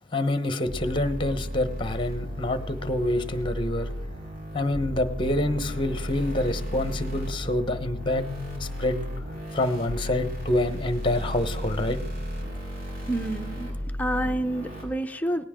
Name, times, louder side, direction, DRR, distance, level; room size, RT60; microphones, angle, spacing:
voice 1, 0.1-3.9 4.5-8.3 8.6-9.0 9.5-12.0, left 1 dB, 25° left, 10 dB, 1.1 m, -27 dB
sound 1, 0.6-14.8, equal, 50° right, 5.5 m, -34 dB
voice 2, 13.1-13.7 14.0-15.4, right 1 dB, 10° left, 6 dB, 0.7 m, -28 dB
18.5 x 17.5 x 3.8 m, 0.81 s
head